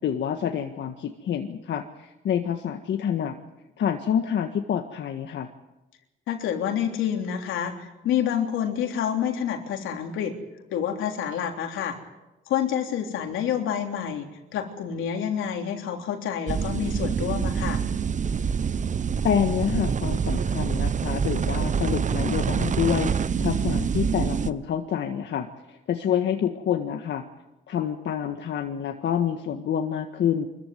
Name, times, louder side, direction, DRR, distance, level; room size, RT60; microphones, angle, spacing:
voice 1, 0.0-3.4 3.8-5.5 19.2-27.2 27.7-30.5, left 8 dB, 65° left, 5 dB, 1.7 m, -27 dB
voice 2, 6.3-10.3 10.7-12.0 12.5-14.3 14.5-17.8, left 9 dB, 85° left, 4 dB, 3.4 m, -28 dB
sound 1, 16.5-24.5, right 6 dB, 40° right, 0.9 m, -26 dB
24.0 x 14.5 x 9.5 m, 1.0 s
cardioid pair, 90°, 20 cm